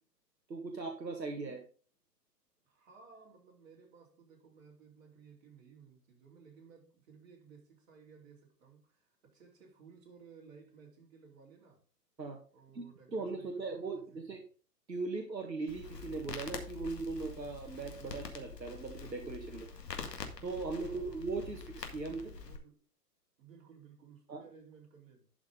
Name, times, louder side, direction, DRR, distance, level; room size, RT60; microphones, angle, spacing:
voice 1, 0.5-1.6 12.2-12.4 12.7-14.4 14.9-19.7 20.4-22.3 24.3-24.4, right 3 dB, 90° right, 1.7 m, -39 dB
voice 2, 2.6-11.8 12.5-14.2 20.7-21.6 22.0-22.8 23.4-25.3, right 6 dB, 50° right, 4.3 m, -58 dB
Crackle, 15.7-22.6, left 5 dB, 75° left, 2.0 m, -45 dB
11.5 x 6.0 x 3.8 m
figure-of-eight pair, 120°, 49 cm